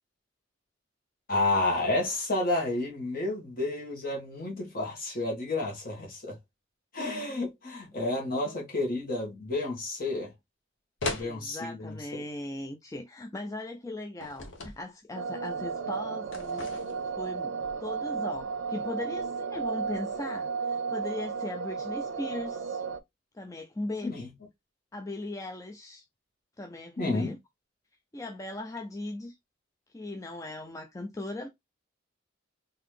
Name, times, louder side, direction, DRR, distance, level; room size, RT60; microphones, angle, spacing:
voice 1, 1.3-6.4 6.9-10.3 11.1-12.2 24.0-24.3 27.0-27.3, left 2 dB, 45° left, 1.5 m, -30 dB
sound 1, 11.0-11.3 14.2-14.8 16.3-17.1, left 3 dB, 70° left, 0.9 m, -36 dB
voice 2, 11.0-16.7 17.2-17.5 17.8-22.8 23.3-24.1 24.9-26.0 26.6-27.4 28.1-29.4 29.9-31.5, left 2 dB, 15° left, 0.4 m, -38 dB
sound 2, 15.1-23.0, right 5 dB, 70° right, 0.5 m, -33 dB
3.9 x 2.7 x 3.3 m
head